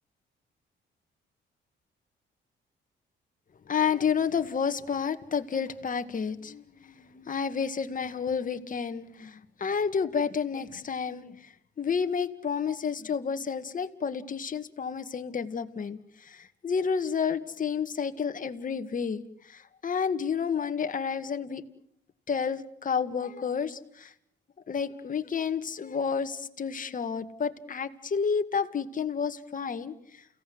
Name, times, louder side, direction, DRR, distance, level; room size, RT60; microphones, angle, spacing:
voice 1, 3.7-21.6 22.3-24.1 24.7-30.2, left 6 dB, 40° left, 9 dB, 2.1 m, -30 dB
30.0 x 17.5 x 9.7 m, 0.73 s
cardioid pair, 90°, 20 cm